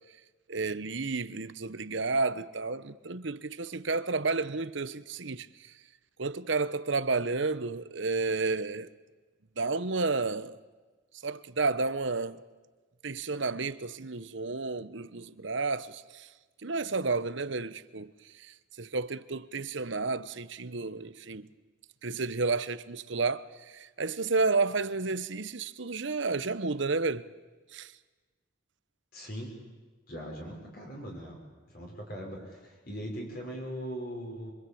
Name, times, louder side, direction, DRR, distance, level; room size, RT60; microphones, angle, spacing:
voice 1, 0.5-5.7 6.2-8.9 9.6-10.6 11.2-12.4 13.0-16.3 16.6-21.5 22.0-27.3 27.7-27.9, right 3 dB, 65° right, 1.0 m, -31 dB
voice 2, 29.1-29.5 30.1-31.4 31.7-34.5, equal, 45° left, 6.1 m, -40 dB
27.0 x 25.0 x 8.7 m
head